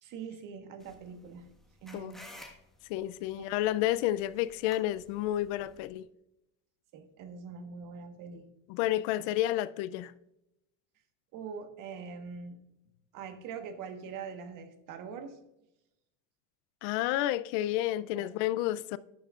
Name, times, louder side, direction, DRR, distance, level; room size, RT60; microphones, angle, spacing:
voice 1, 0.0-1.5 1.8-2.2 3.3-3.5 6.9-8.5 9.1-9.3 11.3-12.6 13.1-15.4 18.1-18.3, right 6 dB, 50° right, 1.4 m, -43 dB
sound 1, 0.8-5.9, left 1 dB, ahead, 1.4 m, -54 dB
voice 2, 2.9-6.1 8.7-10.1 16.8-19.0, left 14 dB, 65° left, 0.5 m, -30 dB
12.0 x 10.5 x 2.4 m
cardioid pair, 155°, 42 cm